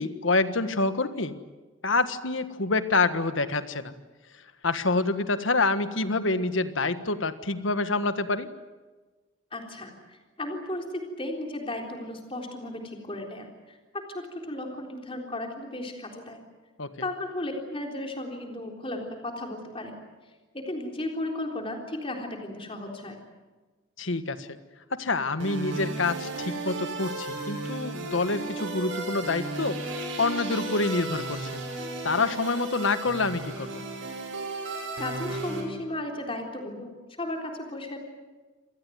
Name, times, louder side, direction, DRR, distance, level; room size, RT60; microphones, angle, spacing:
voice 1, 0.0-1.3 1.8-3.9 4.6-8.5 16.8-16.9 24.0-24.6 24.9-29.8 30.2-31.5 32.0-33.8, left 3 dB, 80° left, 11 dB, 1.5 m, -27 dB
voice 2, 9.5-13.8 14.1-16.4 17.0-20.0 20.5-23.2 35.0-36.9 37.2-38.0, left 1 dB, 25° left, 2 dB, 3.8 m, -35 dB
sound 1, 25.4-35.6, right 2 dB, 80° right, 6.4 m, -34 dB
27.0 x 19.0 x 9.3 m, 1.3 s
head